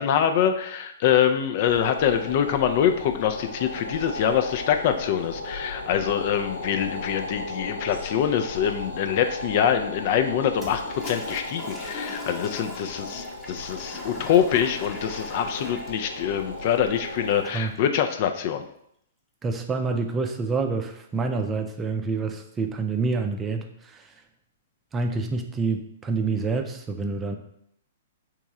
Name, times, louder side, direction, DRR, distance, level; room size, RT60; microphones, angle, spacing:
voice 1, 0.0-18.6, left 9 dB, 45° left, 7 dB, 0.4 m, -24 dB
sound 1, 1.7-17.4, left 1 dB, 75° left, 0.7 m, -36 dB
Toilet flush, 10.6-17.8, left 2 dB, 5° left, 1.0 m, -40 dB
voice 2, 19.4-24.1 24.9-27.4, right 4 dB, 15° right, 5 dB, 0.5 m, -27 dB
3.5 x 3.0 x 4.7 m, 0.72 s
figure-of-eight pair, 110°, 0 cm